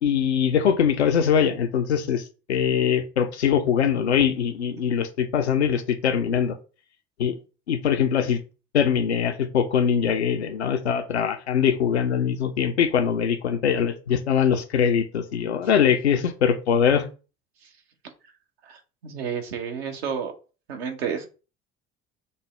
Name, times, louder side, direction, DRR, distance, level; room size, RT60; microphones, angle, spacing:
voice 1, 0.0-2.2 2.5-6.5 7.2-7.3 7.7-8.4 8.7-17.1, left 7 dB, 80° left, 0.5 m, -22 dB
voice 2, 19.0-20.3 20.7-21.3, right 7 dB, 70° right, 0.8 m, -30 dB
5.2 x 2.0 x 3.1 m
figure-of-eight pair, 60°, 33 cm